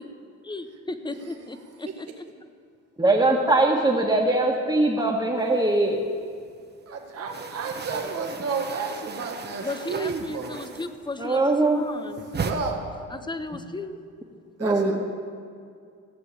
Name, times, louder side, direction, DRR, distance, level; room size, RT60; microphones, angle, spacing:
voice 1, 0.5-2.1 9.6-12.2 13.1-14.0, left 2 dB, 15° left, 10 dB, 0.9 m, -35 dB
voice 2, 3.0-6.0 11.2-11.9 14.6-14.9, right 2 dB, 15° right, -4 dB, 1.7 m, -21 dB
sound 1, 5.5-6.5 6.8-11.2 11.5-12.5, right 5 dB, 35° right, 1.2 m, -36 dB
voice 3, 6.9-10.6 12.4-12.8 14.6-15.0, right 4 dB, 55° right, 1 dB, 1.7 m, -31 dB
15.5 x 6.8 x 8.6 m, 2.3 s
cardioid pair, 90°, 30 cm